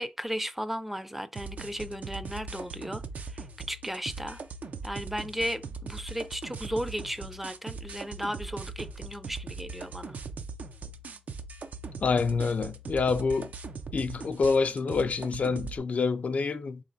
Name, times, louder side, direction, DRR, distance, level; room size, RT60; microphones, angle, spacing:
voice 1, 0.0-4.4 4.8-10.2, equal, 10° right, 0.4 m, -35 dB
sound 1, 1.3-15.8, right 4 dB, 75° right, 0.4 m, -40 dB
voice 2, 12.0-13.5 13.9-16.8, left 4 dB, 65° left, 0.3 m, -27 dB
3.5 x 3.1 x 2.6 m
cardioid pair, 60°, 3 cm